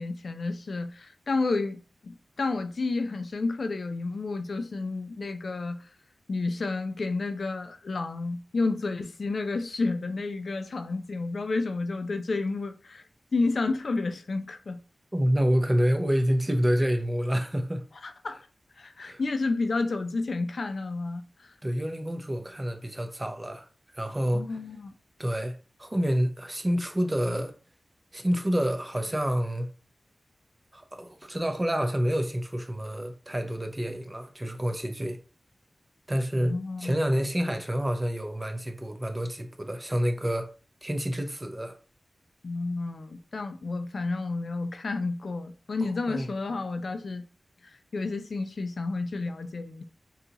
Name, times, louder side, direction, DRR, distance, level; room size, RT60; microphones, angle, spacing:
voice 1, 0.0-5.9 6.3-13.0 13.3-14.8 18.0-18.4 18.8-21.5 24.3-24.9 36.4-37.1 42.4-47.2 47.6-49.8, left 3 dB, 65° left, 0.3 m, -31 dB
voice 2, 15.1-17.8 19.0-19.2 21.6-23.7 23.9-24.5 25.2-27.5 28.1-29.7 30.7-35.2 36.1-36.5 36.8-40.5 40.8-41.8 45.8-46.3, equal, 20° right, 0.5 m, -28 dB
2.8 x 2.3 x 3.8 m
wide cardioid pair, 85°, 0 cm